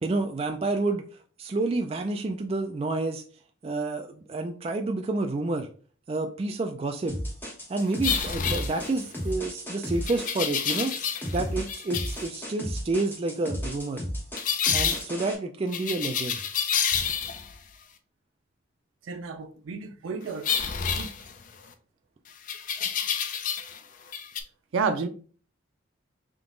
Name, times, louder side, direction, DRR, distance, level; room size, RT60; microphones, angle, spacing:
voice 1, 0.0-1.0 1.4-3.2 3.6-5.7 6.1-7.2 7.7-11.0 11.3-14.0 14.7-16.4, right 2 dB, 30° right, 0.3 m, -29 dB
sound 1, 7.1-15.3, equal, 10° left, 1.0 m, -34 dB
sound 2, 8.0-9.2 10.1-11.4 11.7-12.2 14.4-15.0 15.7-17.6 20.4-21.7 22.5-23.8 24.1-24.4, left 7 dB, 40° left, 0.4 m, -29 dB
voice 2, 19.1-20.5 20.9-21.1 24.7-25.1, right 5 dB, 85° right, 0.5 m, -30 dB
3.6 x 2.9 x 3.8 m
head